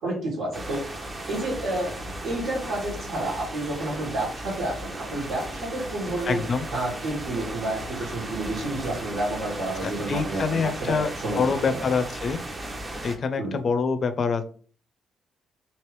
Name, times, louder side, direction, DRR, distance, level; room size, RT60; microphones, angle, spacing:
voice 1, 0.0-0.8 1.3-1.9 2.2-6.4 6.7-11.9 13.4-13.6, right 2 dB, 80° right, -5 dB, 1.7 m, -30 dB
sound 1, 0.5-13.2, right 1 dB, 25° right, 0.7 m, -36 dB
voice 2, 6.3-6.6 9.8-11.1 11.4-12.4 13.0-14.4, left 5 dB, 50° left, 9 dB, 0.4 m, -25 dB
3.2 x 2.8 x 3.1 m, 0.42 s
cardioid pair, 90°, 0 cm